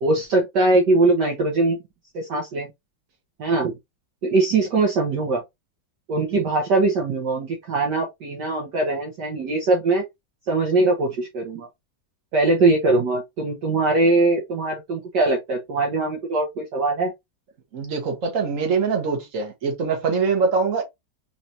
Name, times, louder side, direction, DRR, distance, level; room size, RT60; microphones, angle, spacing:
voice 1, 0.0-1.8 2.1-2.7 3.4-3.7 4.2-5.4 6.1-10.0 10.5-11.7 12.3-17.1, right 2 dB, 60° right, 1.5 m, -21 dB
voice 2, 17.7-20.8, right 5 dB, 40° right, 1.6 m, -23 dB
4.0 x 3.2 x 2.8 m
omnidirectional pair, 2.3 m